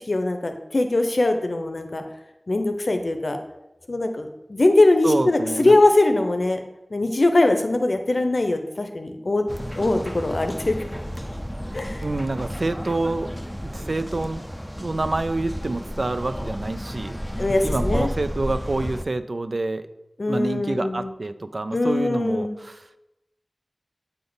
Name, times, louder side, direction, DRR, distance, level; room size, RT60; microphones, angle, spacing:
voice 1, 0.0-2.0 2.5-3.4 3.9-6.6 6.9-9.4 9.8-10.7 11.7-12.0 17.4-18.1 20.2-21.1 21.7-22.6, left 2 dB, 70° left, 6 dB, 0.6 m, -21 dB
voice 2, 5.0-5.8 12.0-13.3 13.6-14.4 14.8-17.2 17.6-19.9 20.3-22.8, right 2 dB, 70° right, 11 dB, 0.3 m, -27 dB
sound 1, 9.5-19.0, equal, 5° left, 0.5 m, -32 dB
8.0 x 3.5 x 3.9 m, 0.95 s
wide cardioid pair, 40°, 0 cm